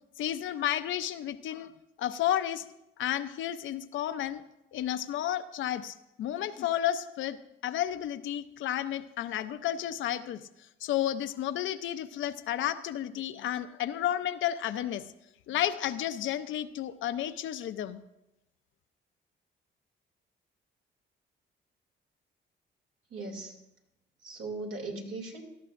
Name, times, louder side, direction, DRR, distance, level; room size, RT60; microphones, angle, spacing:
voice 1, 0.2-1.7 2.0-2.6 3.0-4.4 4.7-10.4 10.8-15.1 15.5-18.0, left 11 dB, 75° left, 11 dB, 0.6 m, -32 dB
voice 2, 23.1-23.6 24.2-25.4, right 2 dB, 75° right, 0 dB, 2.7 m, -38 dB
17.5 x 13.0 x 2.6 m, 0.89 s
cardioid pair, 90°, 20 cm